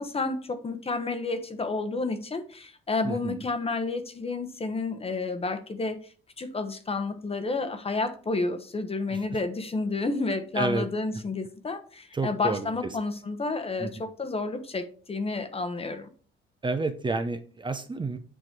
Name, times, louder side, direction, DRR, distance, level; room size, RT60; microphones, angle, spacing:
voice 1, 0.0-16.1, left 3 dB, 30° left, 1.0 m, -30 dB
voice 2, 3.0-3.4 9.1-9.2 10.5-10.9 12.1-13.0 13.8-13.9 16.6-18.2, right 3 dB, 25° right, 0.6 m, -30 dB
8.2 x 3.1 x 4.4 m
cardioid pair, 90°, 20 cm